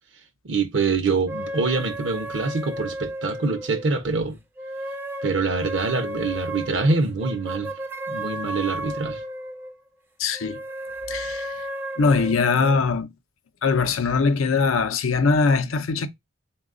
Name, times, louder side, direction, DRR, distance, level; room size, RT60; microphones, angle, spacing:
voice 1, 0.4-4.4 5.2-7.7 8.1-9.2, right 4 dB, 65° right, 0.6 m, -25 dB
sound 1, 1.3-4.0 4.6-9.7 10.3-12.8, right 1 dB, 10° right, 0.3 m, -33 dB
voice 2, 10.2-10.6 11.1-11.5 12.0-13.1 13.6-16.1, left 4 dB, 90° left, 0.5 m, -21 dB
3.9 x 2.3 x 3.6 m
head